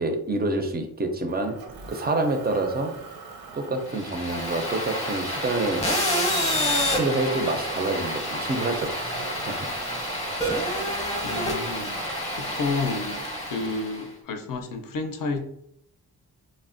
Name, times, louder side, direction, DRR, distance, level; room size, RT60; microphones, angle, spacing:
voice 1, 0.0-1.5 1.9-2.9 3.5-5.8 6.9-9.0 9.3-9.6, right 2 dB, 25° right, 0.3 m, -27 dB
Motor vehicle (road), 1.3-13.8, right 4 dB, 90° right, 0.6 m, -40 dB
sound 1, 3.9-14.1, left 1 dB, 15° left, 0.6 m, -28 dB
voice 2, 11.2-12.0 12.3-15.4, left 3 dB, 60° left, 0.5 m, -30 dB
3.2 x 2.0 x 2.4 m
wide cardioid pair, 110°, 38 cm